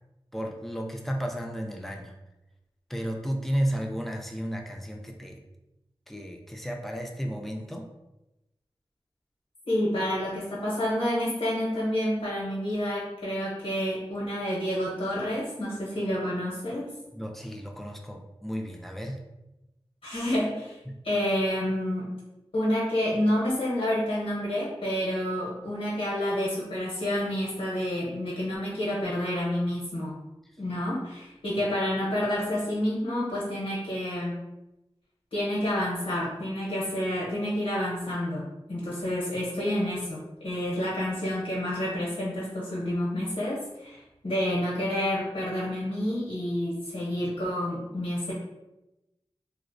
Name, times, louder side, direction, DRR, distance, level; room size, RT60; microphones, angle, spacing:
voice 1, 0.3-2.1 2.9-5.4 6.1-7.9 17.1-19.2 20.9-21.0, equal, ahead, 1 dB, 0.3 m, -33 dB
voice 2, 9.7-17.0 20.0-20.8 21.0-22.1 22.5-30.2 30.6-34.4 35.3-44.0 44.2-48.3, left 1 dB, 85° left, -7 dB, 0.7 m, -29 dB
2.4 x 2.0 x 2.5 m, 0.97 s
wide cardioid pair, 50°, 10 cm